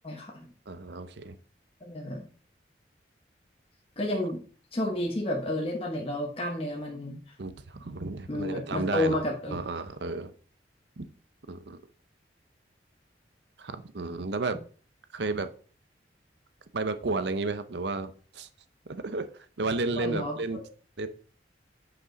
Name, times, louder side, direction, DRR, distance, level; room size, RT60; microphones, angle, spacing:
voice 1, 0.0-0.4 1.8-2.2 4.0-4.4 4.7-7.3 8.3-9.6 20.0-20.4, left 1 dB, 30° left, -1 dB, 1.1 m, -31 dB
voice 2, 0.7-1.4 7.4-9.2 9.5-10.3 11.0-11.1 11.5-11.8 13.6-14.6 15.1-15.5 16.7-18.5 18.9-19.3 19.6-20.6 21.0-21.1, right 3 dB, 70° right, 11 dB, 0.7 m, -32 dB
8.4 x 5.3 x 4.0 m, 0.41 s
head